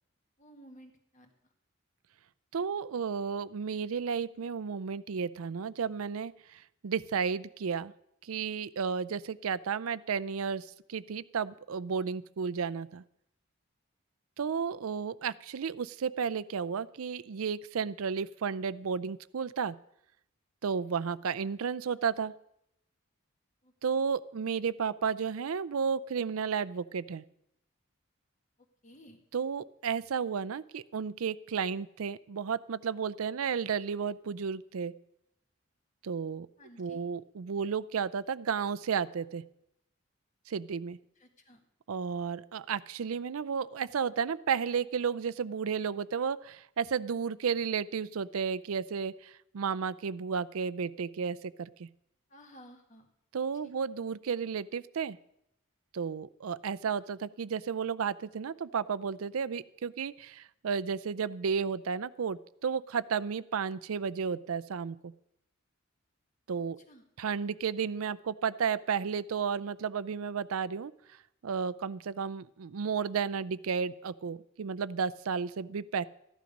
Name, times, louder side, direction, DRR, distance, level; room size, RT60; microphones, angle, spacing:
voice 1, 0.4-1.3 23.6-24.1 28.8-29.2 36.6-37.0 41.2-41.6 52.3-53.1 53.6-53.7 66.9-67.0, equal, 35° left, 4 dB, 1.7 m, -55 dB
voice 2, 2.5-7.9 8.2-13.0 14.4-19.8 20.6-22.3 23.8-27.2 29.3-34.9 36.0-36.5 36.8-39.4 40.5-41.0 41.9-51.9 53.3-55.2 55.9-65.1 66.5-66.8 67.2-70.9 71.4-76.0, right 6 dB, 85° right, 17 dB, 0.5 m, -33 dB
14.5 x 11.5 x 5.3 m, 0.80 s
head